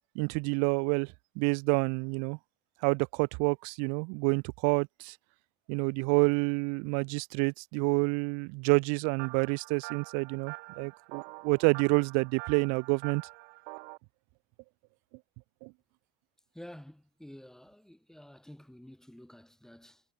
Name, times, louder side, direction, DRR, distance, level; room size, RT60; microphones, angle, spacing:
voice 1, 0.1-2.4 2.8-5.1 5.7-13.2 15.6-15.7, right 35 dB, 70° right, 1.2 m, -28 dB
sound 1, 9.2-14.0, right 30 dB, 90° right, 7.6 m, -45 dB
voice 2, 16.5-20.0, left 1 dB, ahead, 4.1 m, -50 dB
cardioid pair, 150°, 29 cm